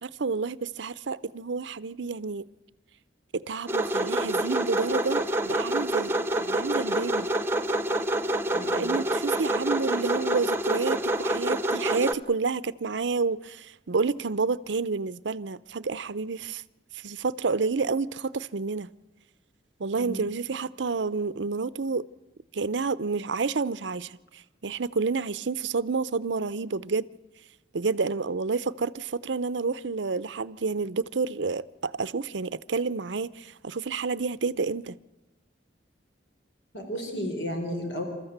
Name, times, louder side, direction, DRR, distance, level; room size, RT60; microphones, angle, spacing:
voice 1, 0.0-2.4 3.3-7.3 8.7-16.6 16.9-18.9 19.8-22.0 22.5-24.2 24.6-27.1 27.7-35.0, right 4 dB, 80° right, 0.7 m, -29 dB
sound 1, 3.7-12.1, right 1 dB, 15° right, 0.9 m, -27 dB
voice 2, 8.5-8.8 20.0-20.2 36.7-38.0, equal, 80° left, 4.1 m, -33 dB
28.0 x 14.0 x 8.0 m
head